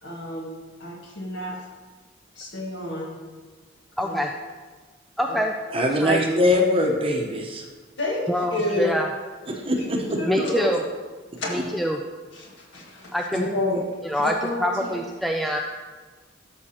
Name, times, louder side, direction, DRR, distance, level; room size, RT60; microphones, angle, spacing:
voice 1, 0.0-1.6 2.3-3.1 4.0-4.1 8.0-8.9 9.8-10.8 11.4-11.6 12.3-13.8 14.1-15.0, left 1 dB, 60° left, 1.7 m, -30 dB
voice 2, 4.0-4.3 5.2-6.2 8.3-9.1 10.2-10.8 11.5-12.0 13.1-13.5 14.0-14.3 14.6-15.6, equal, ahead, 0.3 m, -25 dB
voice 3, 5.7-7.6 9.5-10.2, left 1 dB, 30° right, 0.9 m, -22 dB
13.0 x 6.1 x 2.9 m
head